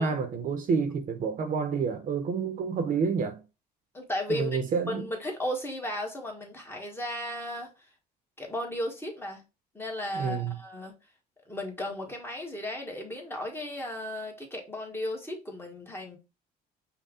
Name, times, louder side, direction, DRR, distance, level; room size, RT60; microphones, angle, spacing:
voice 1, 0.0-3.4 4.3-5.1 10.1-10.6, right 5 dB, 55° right, 0.9 m, -29 dB
voice 2, 3.9-4.6 4.9-7.7 8.4-9.4 9.7-10.9 11.5-16.2, left 1 dB, 15° left, 1.5 m, -35 dB
5.5 x 2.3 x 3.7 m
cardioid pair, 110°, 17 cm